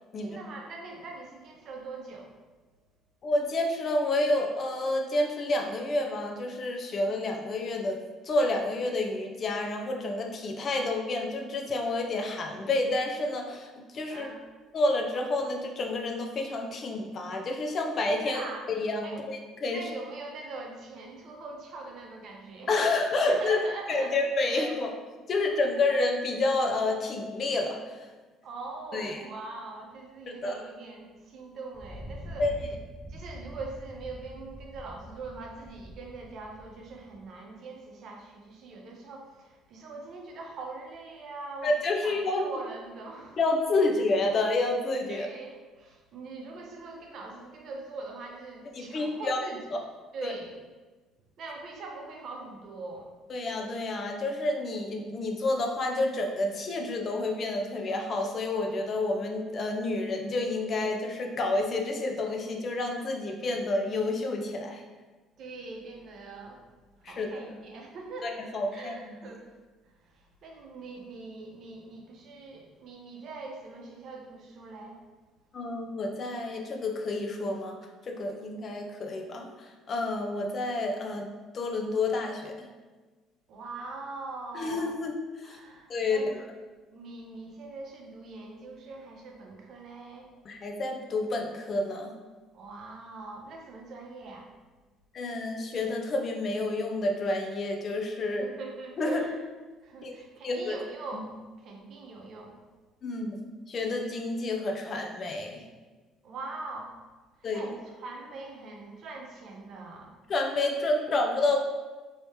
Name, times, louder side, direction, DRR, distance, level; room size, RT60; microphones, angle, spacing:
voice 1, 0.2-2.4 14.1-14.4 18.2-18.7 19.0-19.2 19.7-22.8 23.2-24.2 24.5-24.8 25.4-25.6 28.4-32.5 33.1-43.4 43.8-44.0 45.1-49.6 50.1-50.6 51.4-53.1 65.4-66.7 67.0-69.5 69.8-75.0 83.5-85.0 85.4-86.4 86.9-90.3 92.5-94.5 98.4-99.4 99.8-102.6 106.2-107.0 107.3-110.2, right 3 dB, 60° right, 1 dB, 0.6 m, -42 dB
voice 2, 3.2-8.0 8.2-14.3 14.7-19.8 22.7-23.6 23.9-24.9 25.3-28.1 28.9-29.2 30.3-30.6 32.4-32.5 41.6-42.5 43.4-45.3 48.7-49.4 50.2-50.3 53.3-64.8 67.0-67.6 68.2-69.1 75.5-77.8 78.0-81.3 81.5-82.7 84.5-85.1 85.4-85.6 85.9-86.2 90.5-92.1 95.1-98.5 99.0-99.2 100.0-100.1 100.4-100.8 101.1-101.2 103.0-103.4 103.7-105.6 107.4-107.6 110.3-111.6, left 2 dB, 50° left, 3 dB, 0.5 m, -29 dB
Thunder, 31.7-37.2, equal, 20° right, 0.4 m, -44 dB
3.1 x 2.8 x 3.2 m, 1.3 s
hypercardioid pair, 65°, 0 cm